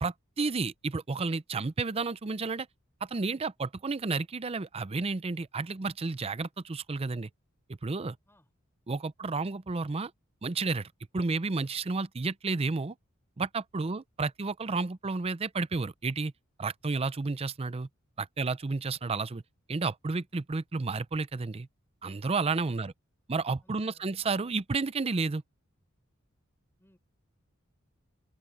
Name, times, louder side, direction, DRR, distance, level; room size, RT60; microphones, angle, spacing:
voice 1, 0.0-2.7 3.0-7.3 7.8-8.2 8.9-10.1 10.4-12.9 13.4-16.3 16.6-17.9 18.2-19.4 19.7-21.7 22.0-22.9 23.3-25.4, right 3 dB, 30° right, 0.5 m, -31 dB
voice 2, 23.6-24.2 26.8-27.0, left 1 dB, 10° left, 4.9 m, -64 dB
open air
head